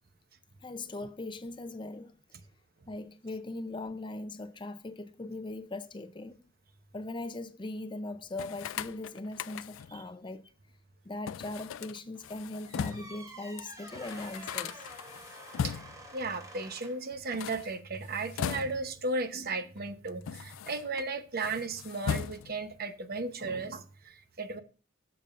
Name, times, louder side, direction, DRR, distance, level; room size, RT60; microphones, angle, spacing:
voice 1, 0.6-2.2 2.9-6.5 6.9-10.5 11.0-14.9, left 2 dB, 25° left, 0.6 m, -40 dB
sound 1, 8.3-10.0 11.3-13.2 13.6-13.7 13.9-16.1 17.2-19.0 19.8-21.1 21.4-22.7, left 7 dB, 90° left, 0.4 m, -38 dB
sound 2, 12.6-17.1, right 1 dB, 20° right, 2.7 m, -49 dB
voice 2, 16.1-24.6, right 3 dB, 50° right, 0.9 m, -35 dB
16.0 x 7.0 x 2.5 m
head